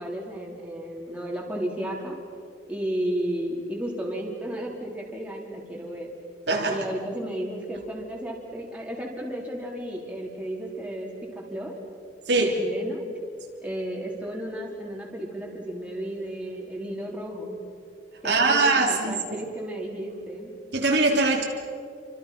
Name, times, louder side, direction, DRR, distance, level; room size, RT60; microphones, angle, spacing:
voice 1, 0.0-2.2 2.7-6.1 6.7-11.7 12.3-13.1 13.6-17.6 18.2-20.5, right 1 dB, 5° right, -2 dB, 3.9 m, -33 dB
voice 2, 6.5-6.8 12.3-12.6 18.2-19.5 20.7-21.4, right 3 dB, 65° right, 0 dB, 3.1 m, -22 dB
29.0 x 25.5 x 5.9 m, 2.3 s
head